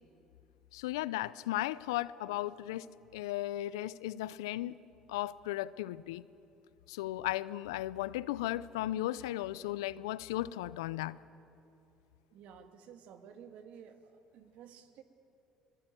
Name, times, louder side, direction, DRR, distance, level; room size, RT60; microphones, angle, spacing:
voice 1, 0.7-4.8 5.1-6.2 6.9-11.2, left 15 dB, 85° left, 19 dB, 0.6 m, -36 dB
voice 2, 12.3-14.0 14.3-15.0, right 8 dB, 65° right, 7 dB, 2.1 m, -52 dB
23.5 x 21.5 x 9.2 m, 2.7 s
hypercardioid pair, 65°, 2 cm